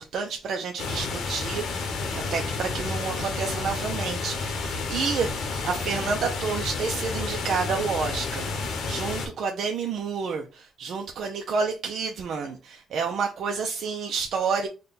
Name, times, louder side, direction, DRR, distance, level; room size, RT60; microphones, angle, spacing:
voice 1, 0.0-14.7, right 5 dB, 65° right, 0.5 m, -30 dB
sound 1, 0.8-9.3, left 4 dB, 75° left, 0.9 m, -30 dB
3.6 x 2.2 x 4.1 m
cardioid pair, 90°, 0 cm